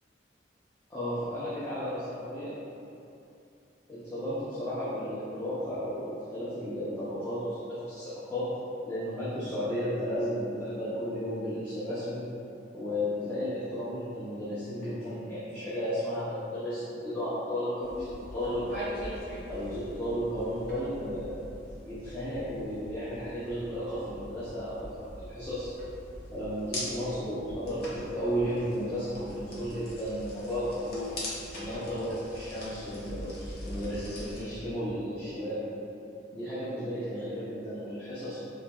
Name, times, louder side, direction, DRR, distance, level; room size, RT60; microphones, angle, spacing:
voice 1, 0.9-2.0 2.3-2.5 3.9-8.5 8.9-12.2 12.7-21.4 21.9-25.7 26.3-31.1 31.5-35.6 36.3-38.4, equal, 15° left, -13 dB, 0.6 m, -34 dB
sound 1, 17.8-34.4, left 1 dB, 55° left, 0.7 m, -42 dB
4.3 x 2.2 x 2.4 m, 2.7 s
head